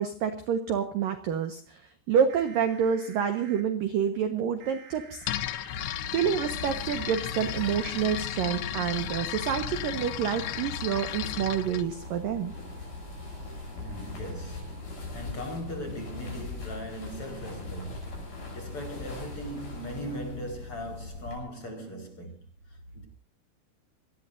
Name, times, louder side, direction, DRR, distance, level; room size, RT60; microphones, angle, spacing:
voice 1, 0.0-1.8 2.1-5.2 6.1-12.5, right 8 dB, 70° right, 2.2 m, -28 dB
sound 1, 2.3-3.6 4.6-5.9 6.9-8.2 9.2-14.8, right 7 dB, 90° right, 6.3 m, -53 dB
sound 2, 5.2-11.9, left 13 dB, 85° left, 2.2 m, -35 dB
sound 3, 5.7-21.4, left 3 dB, 45° left, 9.2 m, -40 dB
voice 2, 13.7-14.8 15.1-22.4 22.9-23.1, equal, 30° left, 5.0 m, -39 dB
26.5 x 19.5 x 2.7 m
omnidirectional pair, 5.9 m